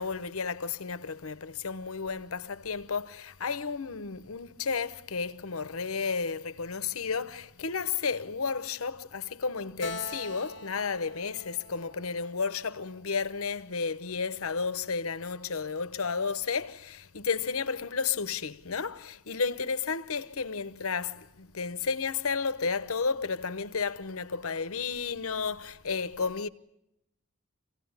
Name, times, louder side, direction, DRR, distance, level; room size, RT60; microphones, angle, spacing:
voice 1, 0.0-26.5, left 5 dB, 90° left, 1.0 m, -32 dB
Keyboard (musical), 9.8-13.3, left 3 dB, 55° left, 1.1 m, -43 dB
27.0 x 17.0 x 9.7 m
head